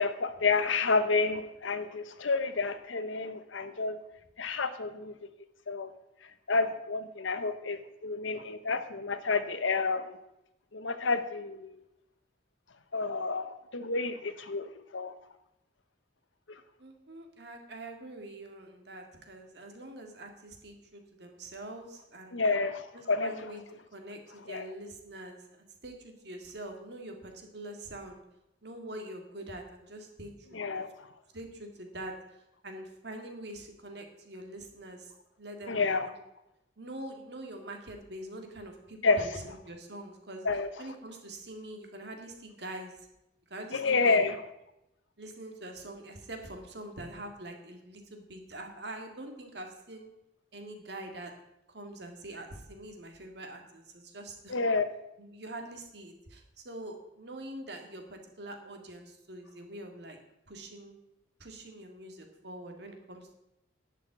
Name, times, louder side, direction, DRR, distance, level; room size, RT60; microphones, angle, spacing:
voice 1, 0.0-4.0 4.4-5.1 5.7-5.9 6.5-10.2 10.7-11.8 12.9-15.1 16.5-16.6 22.3-23.5 24.5-24.7 30.5-31.1 35.7-36.1 39.0-39.2 40.4-40.7 43.7-44.4 54.5-54.9, left 4 dB, 85° left, 11 dB, 1.0 m, -29 dB
voice 2, 16.8-22.4 22.9-23.6 23.9-28.2 28.6-30.6 31.3-32.1 32.6-35.1 35.4-36.2 36.8-40.5 40.8-42.9 43.5-44.3 45.2-50.1 50.5-51.3 51.7-54.6 55.2-60.2 60.5-61.0 61.4-63.3, right 1 dB, 60° right, 4 dB, 2.0 m, -44 dB
11.5 x 5.7 x 8.9 m, 0.87 s
head